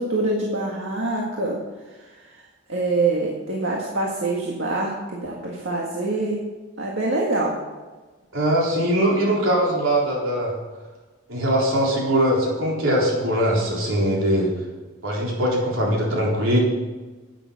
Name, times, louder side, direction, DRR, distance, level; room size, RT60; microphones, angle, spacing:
voice 1, 0.0-1.6 2.0-2.4 2.7-6.4 6.8-7.5, right 2 dB, 75° right, -2 dB, 1.7 m, -25 dB
voice 2, 8.3-10.5 11.3-14.5 15.0-16.6, equal, 90° right, -3 dB, 3.8 m, -21 dB
11.0 x 9.2 x 5.8 m, 1.3 s
head